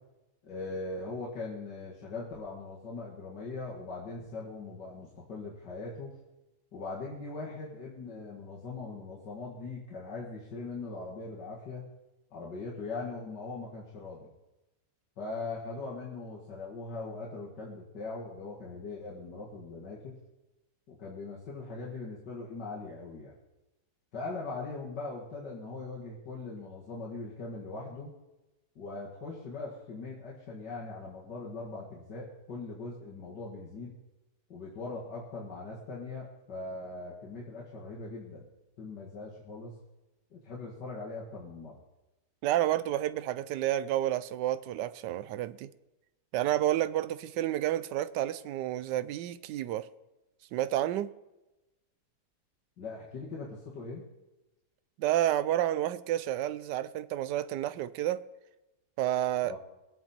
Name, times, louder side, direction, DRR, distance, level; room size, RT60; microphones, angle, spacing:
voice 1, 0.4-6.1 6.7-11.9 12.3-14.3 15.2-20.2 20.9-23.3 24.1-28.1 28.8-34.0 34.5-38.5 38.8-39.7 40.3-41.8 52.8-54.0 59.4-59.6, left 3 dB, 80° left, 2.5 m, -40 dB
voice 2, 42.4-45.7 46.3-49.9 50.5-51.1 55.0-58.2 59.0-59.5, right 13 dB, 85° right, 1.2 m, -30 dB
22.0 x 8.7 x 4.3 m
omnidirectional pair, 1.8 m